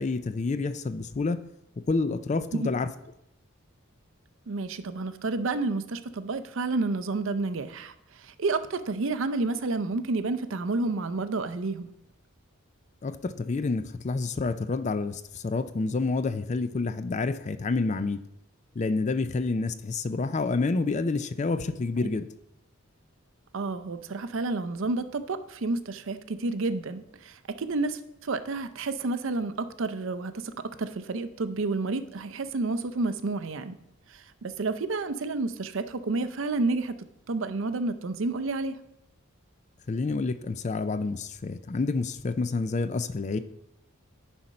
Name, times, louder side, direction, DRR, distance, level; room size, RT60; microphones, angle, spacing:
voice 1, 0.0-1.4 1.9-2.9 13.0-18.2 18.8-22.3 39.9-43.4, left 3 dB, 35° left, 12 dB, 0.4 m, -28 dB
voice 2, 4.5-11.9 22.0-22.1 23.5-30.5 30.8-33.8 34.1-37.0 37.3-38.7, right 3 dB, 60° right, 11 dB, 0.5 m, -30 dB
9.8 x 4.3 x 5.3 m, 0.83 s
head